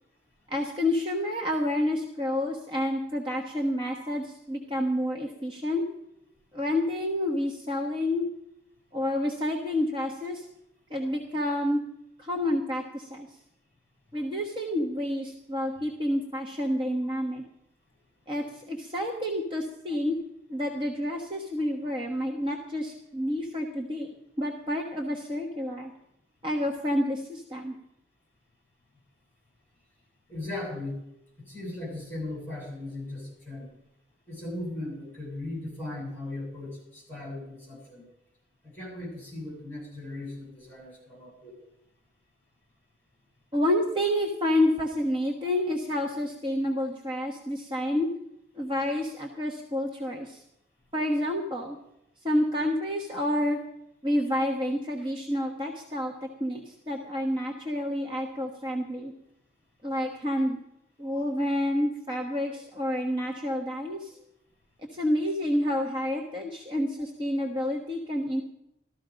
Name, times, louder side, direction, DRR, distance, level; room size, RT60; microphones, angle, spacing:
voice 1, 0.5-5.8 6.5-8.3 8.9-10.5 10.9-11.8 12.2-13.4 14.1-17.4 18.3-20.2 20.5-25.9 26.4-27.7 43.5-48.1 48.6-50.4 50.9-51.8 52.2-53.6 54.0-59.1 59.8-60.6 61.0-64.2 64.9-68.4, left 1 dB, 25° right, 0 dB, 1.3 m, -29 dB
voice 2, 30.3-31.0 31.4-33.7 34.3-38.0 38.6-41.5 63.5-63.6, left 2 dB, 10° left, -2 dB, 7.2 m, -38 dB
14.0 x 13.5 x 5.2 m, 0.82 s
head